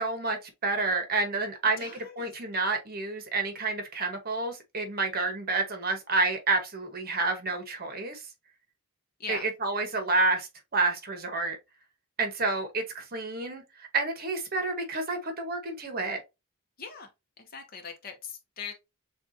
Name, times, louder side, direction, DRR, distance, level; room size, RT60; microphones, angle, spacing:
voice 1, 0.0-8.2 9.3-11.6 12.2-13.6 13.9-16.2, right 3 dB, 45° right, 1.2 m, -29 dB
voice 2, 1.8-2.3 9.2-9.5 16.8-17.1 17.4-18.7, left 6 dB, 45° left, 0.9 m, -41 dB
7.0 x 2.5 x 2.7 m
head